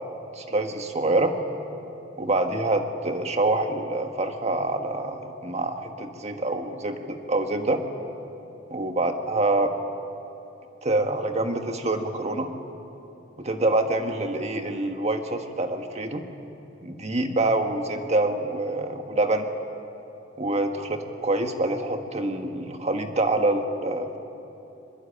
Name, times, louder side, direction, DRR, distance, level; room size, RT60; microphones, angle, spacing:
voice 1, 0.3-1.3 2.2-7.8 8.7-9.7 10.8-12.5 13.4-16.2 16.8-19.5 20.4-24.2, right 2 dB, 35° right, 5 dB, 1.6 m, -26 dB
23.5 x 21.0 x 9.1 m, 2.9 s
head